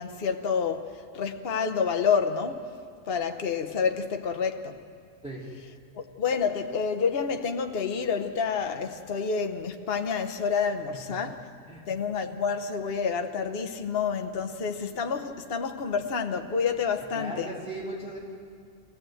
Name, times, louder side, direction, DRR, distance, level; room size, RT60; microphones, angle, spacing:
voice 1, 0.0-2.7 3.1-4.8 5.9-11.4 11.9-17.5, left 6 dB, 50° left, 1.2 m, -28 dB
voice 2, 17.0-18.2, right 1 dB, 5° right, 3.2 m, -38 dB
26.0 x 17.0 x 7.8 m
omnidirectional pair, 1.3 m